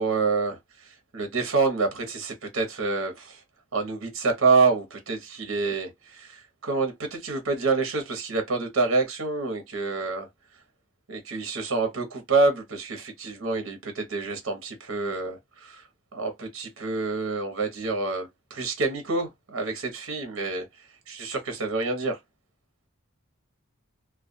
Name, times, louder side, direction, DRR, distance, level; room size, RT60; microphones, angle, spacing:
voice 1, 0.0-3.4 3.7-10.3 11.1-15.8 16.1-20.7 21.1-22.2, right 3 dB, 70° right, 0.9 m, -27 dB
2.3 x 2.2 x 2.5 m
head